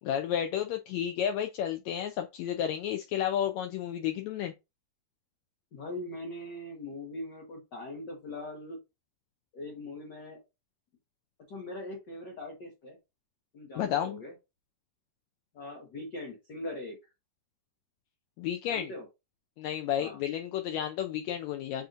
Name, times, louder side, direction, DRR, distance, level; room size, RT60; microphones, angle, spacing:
voice 1, 0.0-4.5 13.8-14.2 18.4-18.9 19.6-21.9, left 10 dB, 85° left, 1.6 m, -32 dB
voice 2, 5.7-8.8 9.5-10.4 11.5-13.0 13.5-14.3 15.5-17.0 18.7-19.0 20.0-20.2, left 1 dB, 65° left, 1.0 m, -41 dB
7.8 x 2.7 x 2.4 m
omnidirectional pair, 3.7 m